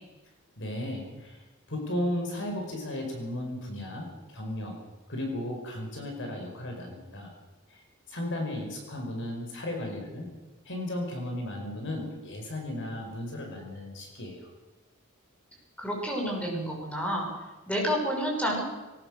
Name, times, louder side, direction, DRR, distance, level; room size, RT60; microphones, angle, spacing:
voice 1, 0.6-1.4 1.7-4.7 5.1-7.3 7.7-7.8 8.1-10.3 10.6-14.5, left 1 dB, 60° left, 2 dB, 5.1 m, -35 dB
voice 2, 15.8-17.3 17.7-18.6, equal, 5° left, -1 dB, 6.2 m, -29 dB
22.0 x 19.0 x 6.6 m, 1.1 s
head